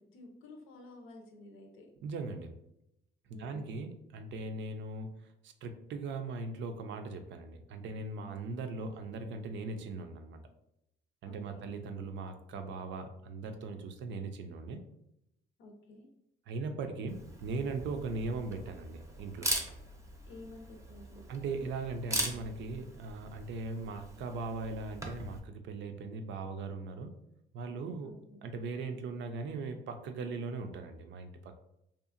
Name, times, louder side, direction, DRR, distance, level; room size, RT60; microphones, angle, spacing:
voice 1, 0.0-1.9 3.3-3.8 8.7-9.0 11.2-11.7 15.6-16.1 20.3-21.3 28.0-28.4, left 2 dB, 90° left, 3 dB, 0.6 m, -52 dB
voice 2, 2.0-2.5 3.3-10.4 11.2-14.8 16.5-19.5 21.3-27.1 27.5-28.1 28.4-31.6, right 3 dB, 70° right, 7 dB, 0.4 m, -39 dB
Camera, 17.1-25.4, right 1 dB, 15° right, 0.5 m, -40 dB
2.7 x 2.4 x 2.4 m, 0.81 s
cardioid pair, 90°, 20 cm